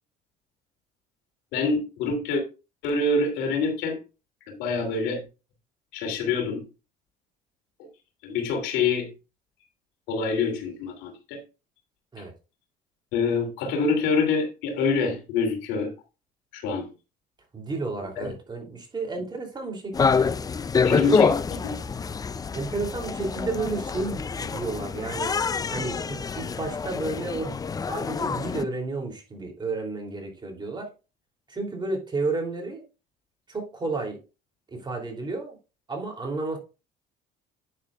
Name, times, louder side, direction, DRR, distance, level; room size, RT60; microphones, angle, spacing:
voice 1, 1.5-2.4 2.8-4.0 4.5-5.2 5.9-6.7 8.2-9.1 10.1-11.4 13.1-15.9 16.5-16.9 18.2-18.3 20.8-21.3 21.6-21.7, left 4 dB, 80° left, 2.9 m, -26 dB
voice 2, 17.5-20.4 20.9-21.1 22.5-25.4 25.7-27.6 27.9-30.9 31.5-32.8 33.5-34.2 34.7-35.6 35.9-36.6, right 3 dB, 25° right, 3.0 m, -32 dB
sound 1, 19.9-28.6, left 5 dB, 20° left, 0.4 m, -26 dB
9.7 x 7.5 x 2.4 m
cardioid pair, 95°, 19 cm